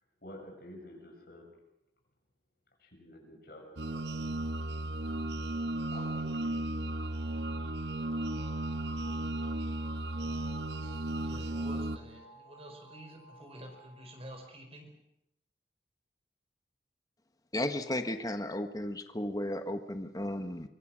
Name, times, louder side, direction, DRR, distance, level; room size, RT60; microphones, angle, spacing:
voice 1, 0.2-1.5 2.8-4.3 5.9-6.8, left 1 dB, 60° left, 1 dB, 6.9 m, -50 dB
sound 1, 3.8-12.0, right 1 dB, 80° right, 1.1 m, -35 dB
sound 2, 6.9-14.4, right 1 dB, 80° left, 5.0 m, -57 dB
voice 2, 11.2-14.9, right 1 dB, 35° right, 4 dB, 4.5 m, -49 dB
voice 3, 17.5-20.7, left 1 dB, 20° left, 8 dB, 1.3 m, -34 dB
25.0 x 23.5 x 6.2 m, 0.83 s
head